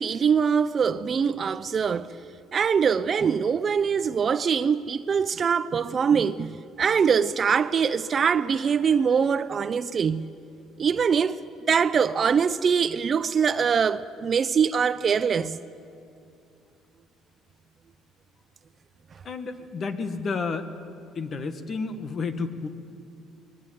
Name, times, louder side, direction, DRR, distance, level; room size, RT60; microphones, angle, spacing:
voice 1, 0.0-2.1 2.5-10.3 10.8-11.4 11.6-15.6, right 6 dB, 35° right, 0.6 m, -23 dB
voice 2, 19.2-20.7 21.1-22.7, left 4 dB, 40° left, 1.7 m, -31 dB
22.0 x 19.5 x 9.4 m
cardioid pair, 125°, 0 cm